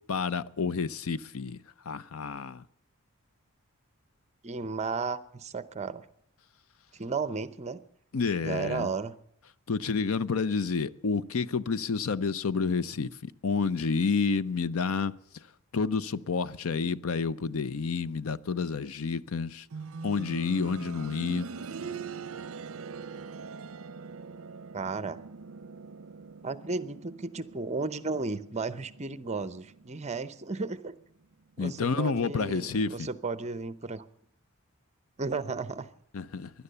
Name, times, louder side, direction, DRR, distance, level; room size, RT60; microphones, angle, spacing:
voice 1, 0.1-1.6 1.8-2.6 8.1-8.9 9.7-15.4 15.7-19.7 20.0-21.5 31.6-33.1 36.1-36.5, left 5 dB, 65° left, 0.6 m, -29 dB
voice 2, 4.4-6.0 6.9-7.8 8.4-9.1 24.7-25.2 26.4-30.9 31.6-34.1 35.2-35.9, right 4 dB, 30° right, 0.7 m, -34 dB
sound 1, 19.7-30.5 30.8-30.9 31.8-31.9, right 5 dB, 65° right, 0.6 m, -43 dB
16.5 x 11.5 x 6.8 m
head